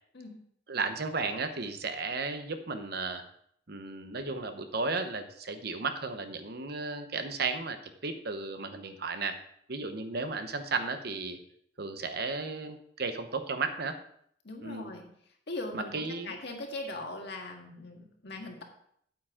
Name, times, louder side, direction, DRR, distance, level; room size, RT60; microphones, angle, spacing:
voice 1, 0.7-3.2 3.7-9.4 9.7-11.4 11.8-14.0 14.6-14.9 15.7-16.3, right 4 dB, 55° right, 8 dB, 0.9 m, -34 dB
voice 2, 14.4-15.1 15.5-18.6, left 2 dB, 60° left, 2 dB, 1.8 m, -40 dB
8.9 x 8.9 x 3.7 m, 0.67 s
head